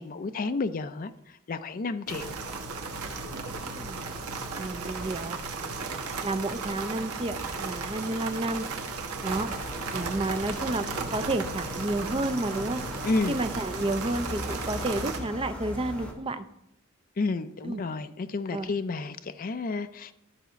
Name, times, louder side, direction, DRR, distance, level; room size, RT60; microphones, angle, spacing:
voice 1, 0.0-2.4 13.0-13.4 17.2-20.1, left 3 dB, 40° left, 10 dB, 0.4 m, -31 dB
sound 1, 2.1-15.2, right 4 dB, 90° right, 1.2 m, -35 dB
voice 2, 3.6-4.1 4.6-5.4 6.2-8.7 9.2-9.5 9.9-10.9 11.1-12.8 13.3-16.5 17.6-17.8 18.5-18.7, right 2 dB, 25° right, 9 dB, 0.5 m, -31 dB
sound 2, 7.3-16.1, left 2 dB, 80° left, 1.0 m, -52 dB
sound 3, 9.2-16.1, left 1 dB, 5° left, 1.3 m, -40 dB
12.0 x 4.1 x 5.7 m, 0.78 s
head